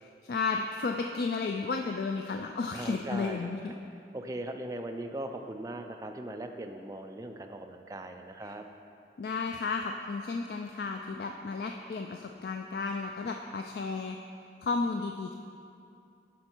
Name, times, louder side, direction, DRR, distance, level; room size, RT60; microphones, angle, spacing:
voice 1, 0.0-3.7 9.2-14.2 14.6-15.4, left 4 dB, 60° left, 3 dB, 0.3 m, -33 dB
voice 2, 2.7-3.7 4.1-8.6, right 1 dB, 20° right, 5 dB, 0.4 m, -39 dB
12.0 x 4.3 x 4.5 m, 2.5 s
head